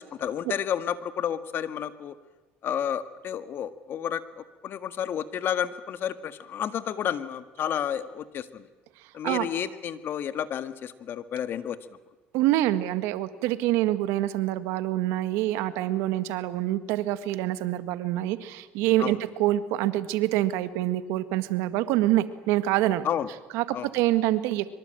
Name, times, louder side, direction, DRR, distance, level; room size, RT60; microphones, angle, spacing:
voice 1, 0.2-2.2 2.6-8.7 9.1-11.8 19.0-19.2 23.0-23.3 23.7-23.9, left 9 dB, 55° left, 12 dB, 1.7 m, -31 dB
voice 2, 12.3-23.1 23.5-24.7, right 15 dB, 80° right, 13 dB, 1.7 m, -26 dB
24.0 x 24.0 x 9.0 m, 1.2 s
supercardioid pair, 90°, 4 cm